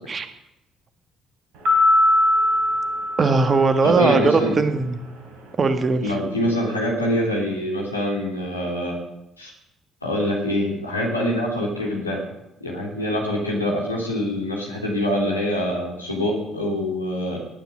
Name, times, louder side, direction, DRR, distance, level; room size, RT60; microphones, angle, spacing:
sound 1, 1.7-4.2, left 1 dB, 60° right, 3.5 m, -20 dB
voice 1, 3.2-5.0 5.6-6.1, right 4 dB, 35° right, 9 dB, 1.7 m, -19 dB
voice 2, 3.8-4.5 6.0-9.0 9.4-9.5 10.0-12.2 12.6-17.4, equal, 85° left, -2 dB, 3.2 m, -24 dB
19.0 x 10.5 x 6.4 m, 0.89 s
figure-of-eight pair, 45°, 0 cm